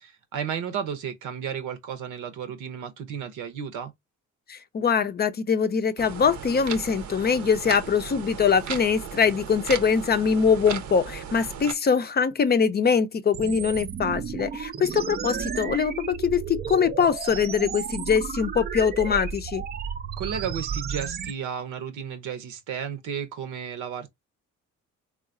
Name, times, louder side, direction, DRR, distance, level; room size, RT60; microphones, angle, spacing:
voice 1, 0.0-3.9 20.2-24.1, right 8 dB, 90° right, 0.9 m, -33 dB
voice 2, 4.5-19.6, left 6 dB, 35° left, 0.5 m, -23 dB
sound 1, 6.0-11.7, right 8 dB, 65° right, 0.7 m, -36 dB
sound 2, 13.3-21.3, right 7 dB, 35° right, 0.4 m, -33 dB
3.8 x 2.4 x 2.4 m
cardioid pair, 90°, 30 cm